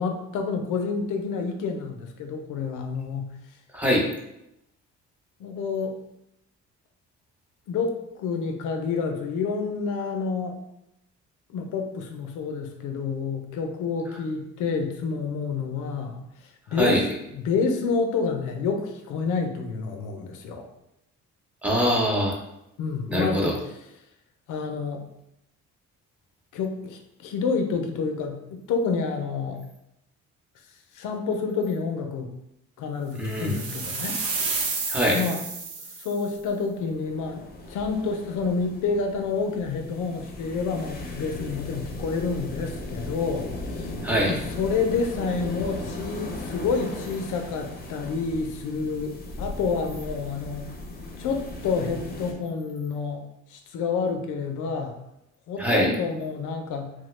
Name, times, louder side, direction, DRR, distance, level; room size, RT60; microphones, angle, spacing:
voice 1, 0.0-3.3 5.4-6.0 7.7-10.6 11.5-16.2 16.7-20.7 22.8-23.6 24.5-25.0 26.5-29.6 30.9-32.3 32.8-34.2 35.1-35.4 36.0-37.4 37.7-43.9 44.2-50.7 51.2-55.0 55.5-56.9, left 5 dB, 85° left, 5 dB, 0.5 m, -28 dB
voice 2, 3.7-4.1 16.7-17.0 21.6-22.4 23.1-23.5 33.1-33.6 34.9-35.2 44.0-44.3 55.6-55.9, equal, 5° right, -2 dB, 0.8 m, -23 dB
sound 1, 33.3-36.3, right 4 dB, 90° right, 0.6 m, -30 dB
sound 2, 36.4-52.3, left 2 dB, 30° left, 0.6 m, -37 dB
3.1 x 2.1 x 3.1 m, 0.84 s
cardioid pair, 90°, 30 cm